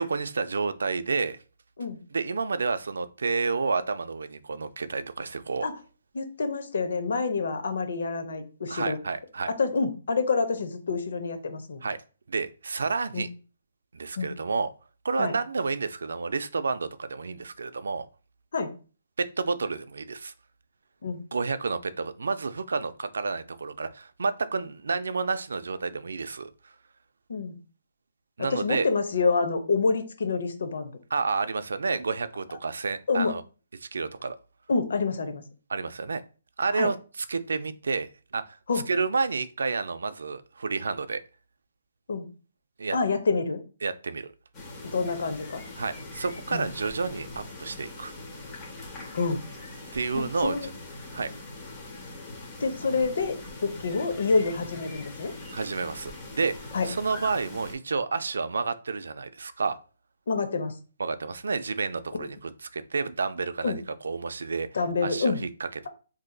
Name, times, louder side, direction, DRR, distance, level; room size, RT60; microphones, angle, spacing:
voice 1, 0.0-1.4 2.1-5.7 8.7-9.5 11.8-12.0 12.3-13.3 13.9-14.7 15.0-18.1 19.2-20.3 21.3-26.5 28.4-28.9 31.1-33.4 33.8-34.4 35.7-36.2 36.6-38.6 38.9-41.2 42.8-43.0 43.8-44.3 45.8-48.1 49.9-50.7 51.1-51.3 55.5-59.8 61.0-64.7 65.0-65.9, right 4 dB, 85° right, 12 dB, 0.3 m, -30 dB
voice 2, 6.1-9.0 9.5-11.8 13.1-13.3 14.2-14.3 15.2-15.3 18.5-18.7 21.0-21.2 27.3-27.5 28.5-30.9 33.1-33.3 34.7-35.4 36.7-36.9 38.7-38.8 42.1-42.3 42.9-43.6 44.9-45.6 46.5-46.6 49.1-49.4 50.2-50.7 52.6-55.3 56.7-56.9 60.3-60.7 63.6-63.8 64.7-65.4, left 4 dB, 65° left, 8 dB, 0.6 m, -27 dB
sound 1, 44.5-57.7, left 2 dB, 15° left, 0.7 m, -42 dB
3.8 x 2.7 x 2.2 m, 0.36 s
hypercardioid pair, 170°, 0 cm